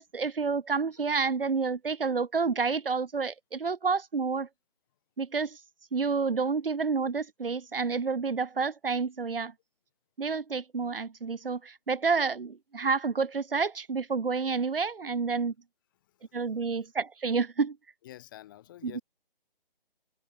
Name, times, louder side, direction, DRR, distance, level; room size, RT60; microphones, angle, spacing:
voice 1, 0.0-4.5 5.2-5.6 5.9-9.5 10.2-15.5 16.3-17.8 18.8-19.0, right 5 dB, 70° right, 2.0 m, -29 dB
voice 2, 18.0-19.0, left 14 dB, 20° left, 2.8 m, -48 dB
figure-of-eight pair, 160°, 29 cm